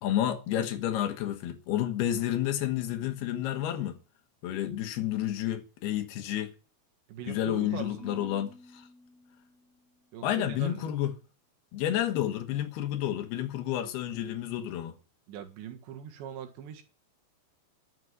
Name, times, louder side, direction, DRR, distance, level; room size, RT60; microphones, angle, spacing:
voice 1, 0.0-4.0 4.4-6.5 7.3-8.9 10.2-11.1 11.7-14.9, left 12 dB, 70° left, 3.1 m, -30 dB
voice 2, 7.1-8.3 10.1-10.9 15.3-16.8, right 8 dB, 85° right, 4.0 m, -41 dB
Marimba xylophone / Wood, 8.0-10.2, left 2 dB, 55° left, 2.6 m, -52 dB
11.5 x 7.7 x 9.5 m
omnidirectional pair, 4.9 m